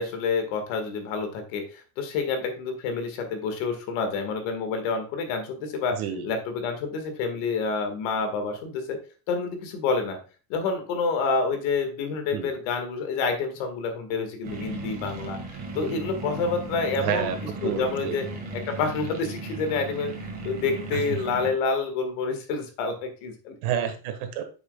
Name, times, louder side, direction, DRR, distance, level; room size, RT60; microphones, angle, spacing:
voice 1, 0.0-9.0 9.3-10.2 10.5-17.3 17.6-18.3 18.5-20.1 20.4-23.5, left 4 dB, 50° left, 6 dB, 1.9 m, -28 dB
voice 2, 5.9-6.3 12.3-12.5 17.0-17.4 17.6-18.2 20.9-21.0 23.6-24.4, right 9 dB, 60° right, 7 dB, 1.6 m, -29 dB
sound 1, 14.4-21.5, right 3 dB, 20° right, 1.8 m, -36 dB
8.4 x 6.4 x 2.3 m, 0.35 s
supercardioid pair, 175°, 48 cm